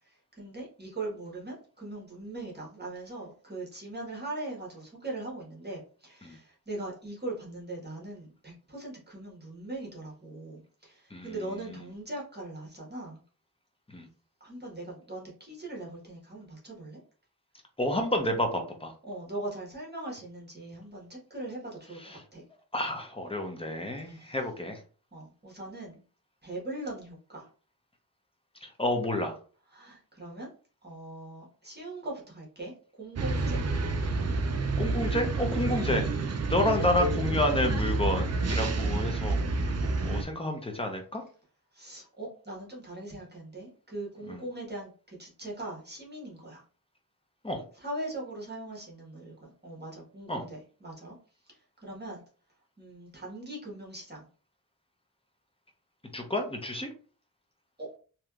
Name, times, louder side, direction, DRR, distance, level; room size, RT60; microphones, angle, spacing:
voice 1, 0.4-13.2 14.4-17.0 19.1-22.4 24.1-24.3 25.1-26.0 26.4-27.5 29.7-30.5 30.8-32.7 33.0-33.6 39.9-40.2 41.7-46.6 47.8-51.2 51.8-52.2 52.8-54.3 57.8-57.9, right 2 dB, 25° right, -4 dB, 1.3 m, -40 dB
voice 2, 11.1-11.4 13.9-14.1 17.8-18.9 22.0-22.2 22.7-24.8 28.6-29.4 34.8-36.1 36.5-39.4 40.0-41.2 44.3-44.4 47.4-47.6 50.3-50.4 56.1-56.9, left 1 dB, 15° left, 4 dB, 0.7 m, -30 dB
sound 1, 33.2-40.2, right 3 dB, 45° right, 0.5 m, -29 dB
3.2 x 2.9 x 2.4 m, 0.39 s
wide cardioid pair, 65°, 36 cm